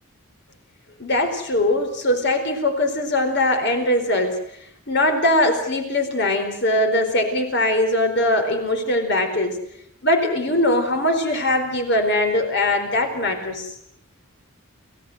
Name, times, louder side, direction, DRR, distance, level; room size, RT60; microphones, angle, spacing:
voice 1, 1.0-4.4 4.9-9.6 10.0-13.7, left 1 dB, 55° left, 5 dB, 4.4 m, -21 dB
29.5 x 15.5 x 8.0 m, 0.73 s
head